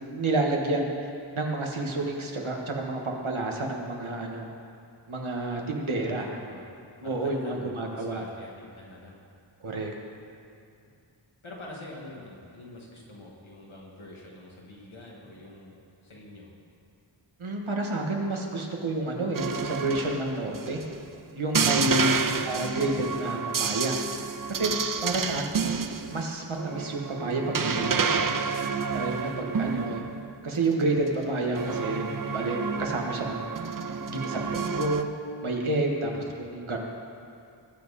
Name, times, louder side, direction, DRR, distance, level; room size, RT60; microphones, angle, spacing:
voice 1, 0.1-4.5 5.1-6.3 7.0-8.2 9.6-9.9 17.4-20.8 21.4-22.1 22.4-24.0 24.5-24.7 25.0-28.3 28.9-30.1 30.4-33.5 33.9-35.1 35.4-36.8, right 2 dB, 85° right, 1 dB, 1.6 m, -29 dB
voice 2, 6.1-6.6 7.0-9.2 10.8-10.9 11.4-16.5 21.9-22.3 29.4-29.7 36.1-36.4, left 1 dB, 85° left, -3 dB, 2.2 m, -46 dB
sound 1, 19.3-21.0 21.5-30.4 30.7-31.1 31.6-35.0, right 5 dB, 45° right, 0.6 m, -30 dB
19.5 x 7.4 x 4.2 m, 2.4 s
wide cardioid pair, 65°, 47 cm